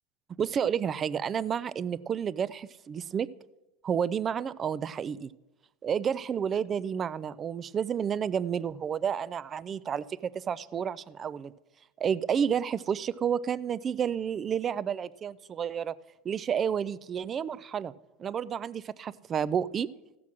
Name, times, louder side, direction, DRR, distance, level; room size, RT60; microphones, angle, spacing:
voice 1, 0.4-3.3 3.8-5.3 5.8-11.5 12.0-15.9 16.2-17.9 18.2-19.9, right 8 dB, 25° right, 18 dB, 0.3 m, -30 dB
15.0 x 6.0 x 6.1 m, 0.98 s
supercardioid pair, 130°, 0 cm